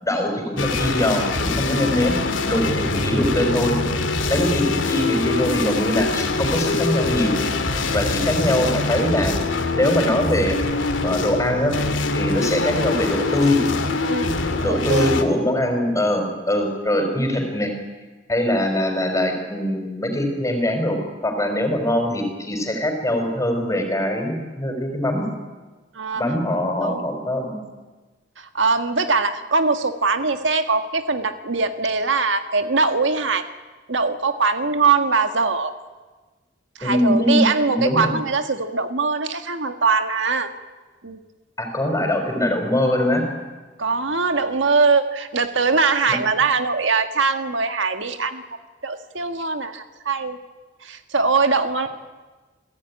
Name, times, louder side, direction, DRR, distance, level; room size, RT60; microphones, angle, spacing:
voice 1, 0.0-3.8 4.3-7.3 7.9-9.4 9.7-10.6 11.0-11.8 12.1-13.6 14.6-17.7 18.3-25.2 26.1-27.6 36.8-38.1 41.6-43.3 46.1-46.2, left 1 dB, 15° left, 4 dB, 4.7 m, -22 dB
sound 1, 0.6-15.2, left 3 dB, 85° left, 2.4 m, -24 dB
voice 2, 14.6-15.1 25.9-26.2 26.5-27.0 28.4-33.4 33.9-35.7 36.8-40.5 41.0-41.2 43.8-48.4 48.8-50.4 50.8-51.9, right 4 dB, 75° right, 8 dB, 1.6 m, -22 dB
29.0 x 17.5 x 9.7 m, 1.3 s
head